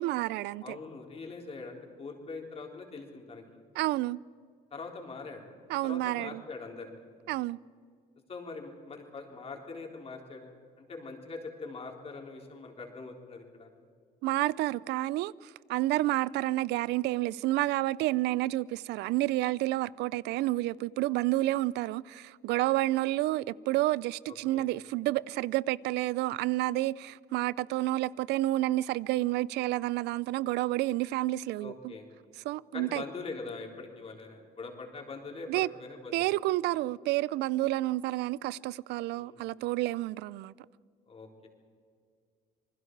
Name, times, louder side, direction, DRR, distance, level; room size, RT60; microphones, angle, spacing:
voice 1, 0.0-0.8 3.8-4.2 5.7-6.4 7.3-7.6 14.2-31.9 32.4-33.0 35.5-35.7 36.1-40.5, right 17 dB, 80° right, 0.5 m, -30 dB
voice 2, 0.6-3.4 4.7-5.4 5.8-7.0 8.3-10.5 10.8-13.7 24.3-24.7 31.6-32.1 32.7-36.3 39.1-39.4 41.1-41.5, left 3 dB, 35° left, 3.8 m, -43 dB
27.5 x 20.5 x 4.7 m
cardioid pair, 110°, 17 cm